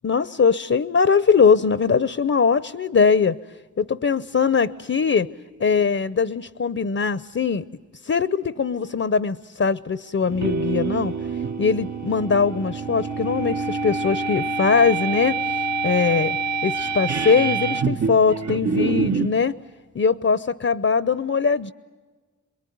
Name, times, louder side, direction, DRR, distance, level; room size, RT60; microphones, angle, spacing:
voice 1, 0.0-3.4 3.8-5.3 5.6-7.6 8.0-11.1 11.6-15.4 15.8-16.4 16.6-19.5 19.9-21.7, left 5 dB, 45° left, 16 dB, 0.7 m, -21 dB
sound 1, 10.2-19.4, right 5 dB, 60° right, 1.2 m, -26 dB
28.5 x 22.0 x 9.4 m, 1.4 s
cardioid pair, 45°, 32 cm